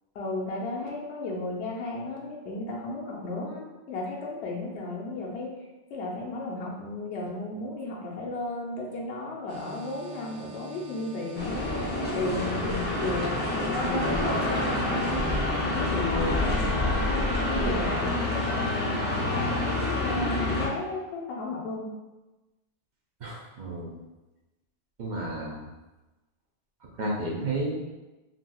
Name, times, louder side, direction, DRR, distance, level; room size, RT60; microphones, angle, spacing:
voice 1, 0.1-5.6 5.9-11.7 12.1-15.3 15.6-19.1 19.5-21.9, left 2 dB, 75° left, -2 dB, 0.9 m, -34 dB
sound 1, 9.5-15.4, right 2 dB, 90° right, 0.9 m, -46 dB
sound 2, 11.3-20.7, left 1 dB, 15° left, 0.3 m, -27 dB
voice 2, 23.2-24.0 25.0-25.7 27.0-27.8, right 2 dB, 55° right, -3 dB, 0.6 m, -32 dB
3.4 x 2.6 x 2.2 m, 1.1 s
omnidirectional pair, 1.1 m